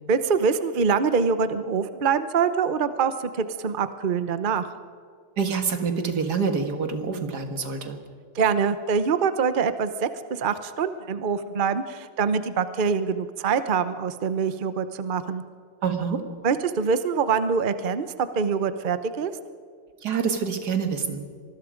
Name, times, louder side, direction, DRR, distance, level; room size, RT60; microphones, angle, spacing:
voice 1, 0.1-4.7 8.3-15.4 16.4-18.1 18.3-19.3, right 6 dB, 70° right, 11 dB, 0.4 m, -24 dB
voice 2, 5.4-8.0 15.8-16.2 20.0-21.2, right 5 dB, 50° right, 7 dB, 2.2 m, -26 dB
25.5 x 20.0 x 5.2 m, 2.2 s
omnidirectional pair, 2.3 m